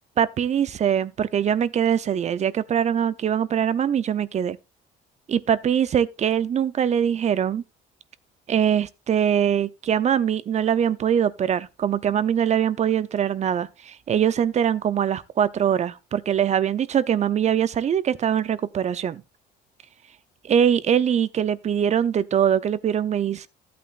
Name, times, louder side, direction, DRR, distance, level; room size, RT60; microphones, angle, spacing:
voice 1, 0.2-4.6 5.3-7.6 8.5-19.2 20.4-23.5, right 9 dB, 40° right, 0.7 m, -22 dB
13.5 x 8.6 x 2.5 m
cardioid pair, 110°, 17 cm